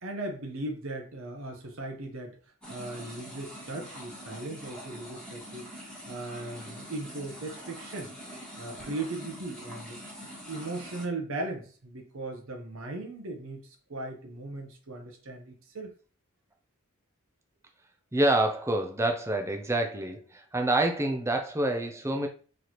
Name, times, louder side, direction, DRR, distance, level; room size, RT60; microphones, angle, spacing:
voice 1, 0.0-2.4 2.7-5.7 6.1-8.1 8.6-10.0 10.5-15.9, right 2 dB, 60° right, 2 dB, 0.8 m, -38 dB
sound 1, 2.6-11.1, equal, 5° left, 1.3 m, -44 dB
voice 2, 18.1-22.3, right 1 dB, 10° right, 4 dB, 0.4 m, -27 dB
4.1 x 3.2 x 2.9 m, 0.40 s
head